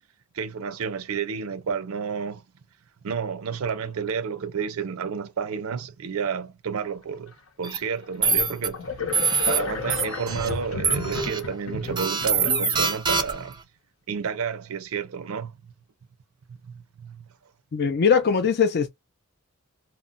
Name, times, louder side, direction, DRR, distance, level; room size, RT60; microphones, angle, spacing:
voice 1, 0.3-2.4 3.0-7.3 7.6-8.8 9.5-13.5 14.1-15.6 16.5-17.2, right 6 dB, 80° right, 0.5 m, -30 dB
sound 1, 7.6-7.8 8.2-8.7 9.1-9.6 9.9-10.5 10.8-11.4 12.0-13.5, right 5 dB, 20° right, 0.4 m, -24 dB
sound 2, 8.0-8.1 8.7-12.9, left 3 dB, 75° left, 0.8 m, -33 dB
voice 2, 17.7-18.9, left 6 dB, 50° left, 0.4 m, -21 dB
2.2 x 2.0 x 3.8 m
head